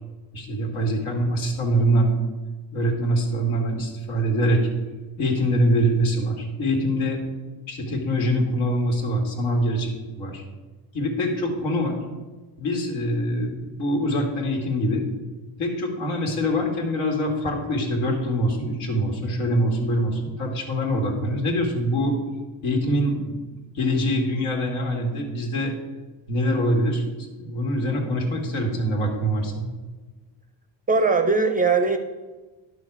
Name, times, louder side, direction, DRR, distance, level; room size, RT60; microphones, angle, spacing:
voice 1, 0.3-2.1 2.7-4.7 5.2-7.2 7.7-10.4 10.9-12.0 12.6-15.0 15.6-22.2 22.6-23.4 23.7-25.7 26.3-27.0 27.4-29.6, equal, 75° left, 1 dB, 2.4 m, -24 dB
voice 2, 30.9-32.0, right 4 dB, 20° right, 7 dB, 0.5 m, -20 dB
11.0 x 6.5 x 4.9 m, 1.3 s
cardioid pair, 125°, 48 cm